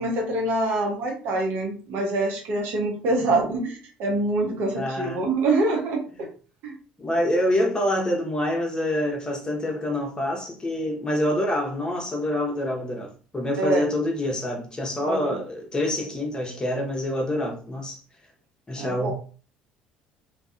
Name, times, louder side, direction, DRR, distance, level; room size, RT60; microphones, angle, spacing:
voice 1, 0.0-6.3 6.6-6.7 13.6-13.9 15.0-15.4 18.8-19.1, right 2 dB, 65° right, 0.8 m, -25 dB
voice 2, 4.7-5.3 7.0-18.0 18.7-19.1, left 1 dB, 20° left, 0.9 m, -26 dB
2.6 x 2.2 x 2.4 m
hypercardioid pair, 65°, 4 cm